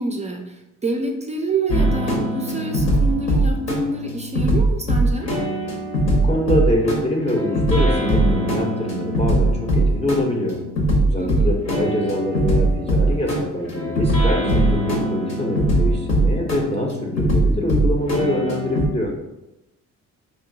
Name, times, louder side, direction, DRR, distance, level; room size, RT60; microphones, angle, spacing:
voice 1, 0.0-5.3 11.2-11.6, right 2 dB, 25° right, 2 dB, 0.4 m, -27 dB
sound 1, 1.7-18.9, right 1 dB, 60° left, 1.1 m, -21 dB
voice 2, 6.1-10.6 11.0-19.1, left 1 dB, 20° left, -1 dB, 0.7 m, -24 dB
4.6 x 2.7 x 2.6 m, 0.92 s
cardioid pair, 90°, 30 cm